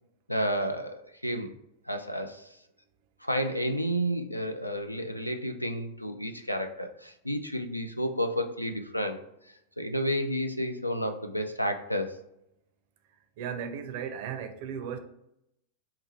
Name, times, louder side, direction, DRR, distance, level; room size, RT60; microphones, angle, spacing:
voice 1, 0.3-1.5 1.9-2.5 3.2-9.2 9.8-12.2, equal, 90° left, 0.4 m, -31 dB
voice 2, 13.4-15.0, right 7 dB, 50° right, 0.5 m, -35 dB
4.4 x 2.4 x 3.1 m
figure-of-eight pair, 90°, 0 cm